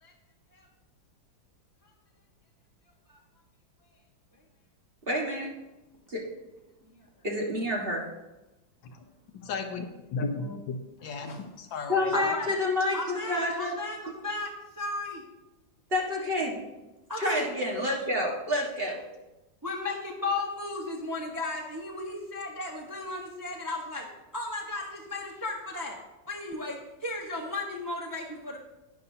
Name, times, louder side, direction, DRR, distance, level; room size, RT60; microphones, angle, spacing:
voice 1, 5.1-5.5 6.1-6.2 7.2-8.1 11.9-13.7 15.9-16.7 17.2-19.0, left 1 dB, 30° right, -2 dB, 1.6 m, -28 dB
voice 2, 9.3-9.9 10.1-10.8 11.0-12.1, left 4 dB, 80° left, 5 dB, 1.6 m, -34 dB
voice 3, 12.1-12.5 12.9-15.2 17.1-17.4 19.6-24.1 24.3-26.0 26.3-28.6, left 2 dB, 15° right, -1 dB, 0.8 m, -35 dB
11.0 x 9.7 x 2.8 m, 1.0 s
omnidirectional pair, 2.1 m